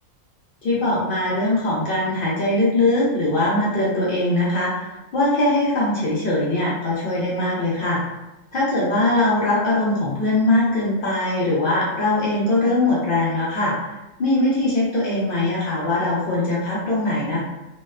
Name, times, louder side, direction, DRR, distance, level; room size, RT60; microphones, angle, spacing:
voice 1, 0.6-8.0 8.5-13.7 14.2-17.4, left 2 dB, 65° left, -6 dB, 0.5 m, -21 dB
2.7 x 2.0 x 2.3 m, 0.97 s
omnidirectional pair, 1.5 m